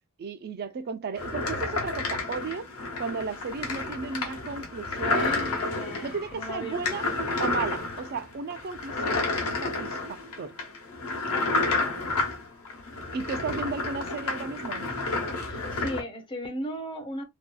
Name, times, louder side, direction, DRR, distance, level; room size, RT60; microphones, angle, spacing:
voice 1, 0.2-2.7 3.0-5.5 6.0-7.1 7.4-9.3 9.6-10.6 13.1-14.9, right 4 dB, 45° right, 0.4 m, -34 dB
sound 1, 1.2-16.0, left 3 dB, 70° left, 0.9 m, -30 dB
sound 2, 4.9-8.4 8.8-9.1, left 1 dB, 55° left, 1.2 m, -41 dB
voice 2, 5.6-7.0 11.3-11.7 15.4-17.2, equal, 25° left, 0.6 m, -37 dB
2.7 x 2.2 x 2.2 m
head